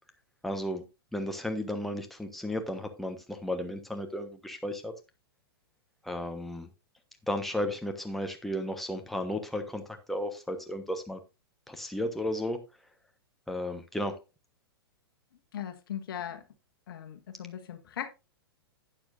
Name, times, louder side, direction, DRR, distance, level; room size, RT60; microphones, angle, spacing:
voice 1, 0.4-0.8 1.1-4.9 6.0-6.7 7.3-9.8 10.1-11.2 11.7-12.6 13.5-14.1, left 1 dB, ahead, 1.3 m, -34 dB
voice 2, 15.5-16.4 16.9-18.1, left 10 dB, 65° left, 1.5 m, -39 dB
12.0 x 9.0 x 2.6 m
figure-of-eight pair, 110°, 13 cm